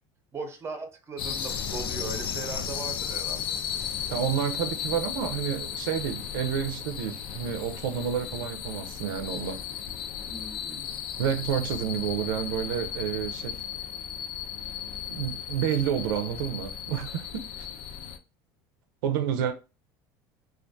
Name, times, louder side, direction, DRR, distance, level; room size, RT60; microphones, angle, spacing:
voice 1, 0.3-3.5 10.3-10.9, right 3 dB, 25° right, 0.6 m, -38 dB
sound 1, 1.2-18.2, left 8 dB, 55° left, 0.4 m, -35 dB
voice 2, 4.1-9.6 11.2-13.6 15.1-17.3 17.6-17.7 19.0-19.5, right 9 dB, 90° right, 0.4 m, -29 dB
2.3 x 2.2 x 2.5 m
supercardioid pair, 100°, 11 cm